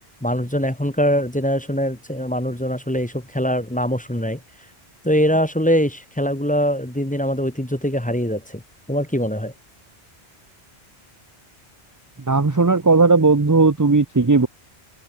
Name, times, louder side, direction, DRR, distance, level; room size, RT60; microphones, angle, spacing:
voice 1, 0.2-4.4 5.0-8.6 8.9-9.5, equal, 10° left, 1.4 m, -22 dB
voice 2, 12.3-14.5, right 3 dB, 20° right, 0.7 m, -16 dB
open air
omnidirectional pair, 1.1 m